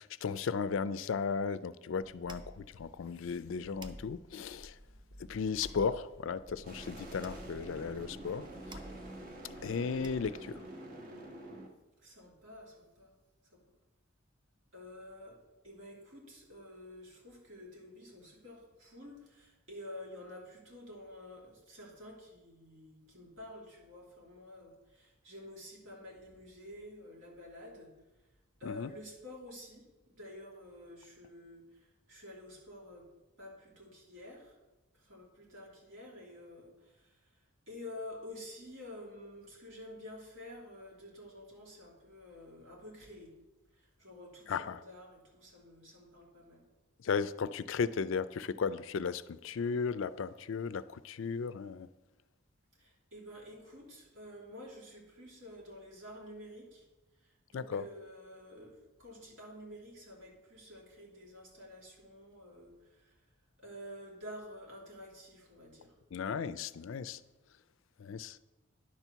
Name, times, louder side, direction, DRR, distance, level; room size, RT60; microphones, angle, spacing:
voice 1, 0.0-4.7 5.3-8.4 9.6-10.6 28.6-28.9 44.5-44.8 47.0-51.9 57.5-57.8 66.1-67.2 68.0-68.4, left 5 dB, 70° left, 0.4 m, -35 dB
sound 1, 2.0-10.6, right 1 dB, 20° right, 0.6 m, -52 dB
sound 2, 6.6-11.7, right 1 dB, 40° right, 1.4 m, -47 dB
voice 2, 12.0-13.1 13.5-13.6 14.7-15.4 15.6-27.9 28.6-33.0 33.4-34.6 34.9-37.2 37.7-43.3 43.8-46.6 52.8-56.9 57.2-63.1 63.6-65.9, left 1 dB, 65° right, 2.9 m, -50 dB
10.5 x 4.5 x 6.8 m
head